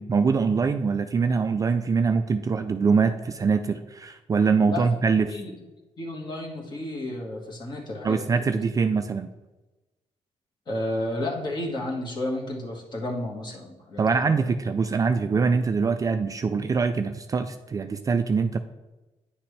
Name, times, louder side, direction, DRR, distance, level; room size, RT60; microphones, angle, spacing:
voice 1, 0.0-5.3 8.0-9.3 14.0-18.6, right 5 dB, 30° right, 9 dB, 0.3 m, -23 dB
voice 2, 6.0-8.6 10.7-14.5, left 1 dB, 40° left, -1 dB, 1.7 m, -32 dB
9.7 x 5.9 x 3.3 m, 1.1 s
cardioid pair, 120°, 11 cm